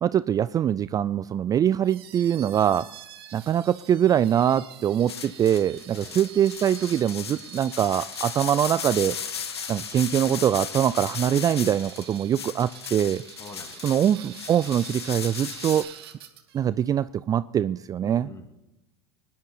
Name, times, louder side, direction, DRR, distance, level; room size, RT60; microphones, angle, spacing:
voice 1, 0.0-2.9 3.3-9.2 9.7-13.2 13.8-15.9 16.5-18.3, right 10 dB, 30° right, 16 dB, 0.4 m, -23 dB
sound 1, 1.8-16.7, right 10 dB, 70° right, 1.7 m, -46 dB
sound 2, 5.1-15.8, left 7 dB, 85° left, 0.7 m, -36 dB
voice 2, 13.4-14.0 18.0-18.7, left 3 dB, 20° left, 6 dB, 2.3 m, -45 dB
19.0 x 11.0 x 4.0 m, 0.98 s
hypercardioid pair, 80°, 13 cm